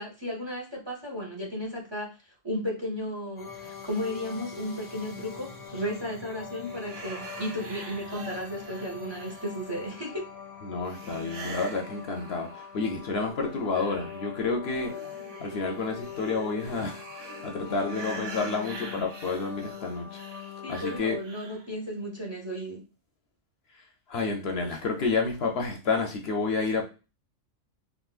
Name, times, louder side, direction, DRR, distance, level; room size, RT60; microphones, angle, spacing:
voice 1, 0.0-2.1 2.4-10.3 17.6-17.7 20.6-22.8, equal, 25° right, -1 dB, 0.7 m, -34 dB
sound 1, 3.4-21.0, left 8 dB, 20° left, 0.8 m, -42 dB
sound 2, 6.6-9.8 10.9-12.9 13.3-21.7, right 3 dB, 80° right, 1.1 m, -45 dB
voice 2, 10.6-14.9 15.4-20.2 20.7-21.2 24.1-26.9, left 4 dB, 65° left, 2 dB, 0.8 m, -30 dB
3.7 x 2.5 x 2.4 m, 0.31 s
omnidirectional pair, 1.3 m